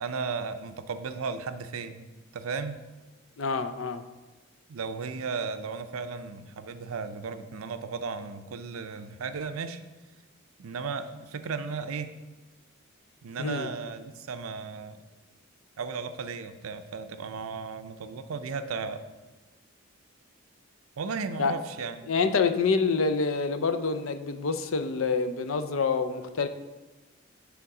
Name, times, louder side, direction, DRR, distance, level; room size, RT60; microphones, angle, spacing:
voice 1, 0.0-2.8 4.7-9.8 10.6-12.1 13.2-15.0 15.8-19.0 21.0-22.1, right 5 dB, 90° right, 10 dB, 0.5 m, -35 dB
voice 2, 3.4-4.0 13.4-13.7 21.4-21.5 22.1-26.5, left 4 dB, 75° left, 9 dB, 0.5 m, -27 dB
9.4 x 3.6 x 4.8 m, 1.2 s
head